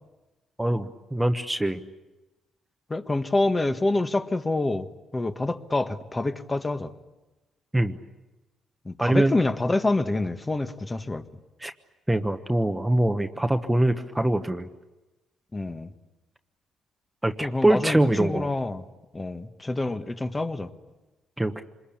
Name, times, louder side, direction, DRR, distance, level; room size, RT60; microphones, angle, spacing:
voice 1, 0.6-1.8 7.7-8.0 9.0-9.4 11.6-11.7 12.1-14.7 17.2-18.5 21.4-21.6, right 1 dB, 10° right, 7 dB, 1.2 m, -23 dB
voice 2, 2.9-4.9 5.1-6.9 8.8-11.2 15.5-15.9 17.4-18.8 19.1-20.7, left 2 dB, 20° left, 9 dB, 1.5 m, -27 dB
27.0 x 21.5 x 8.7 m, 1.1 s
cardioid pair, 90°, 0 cm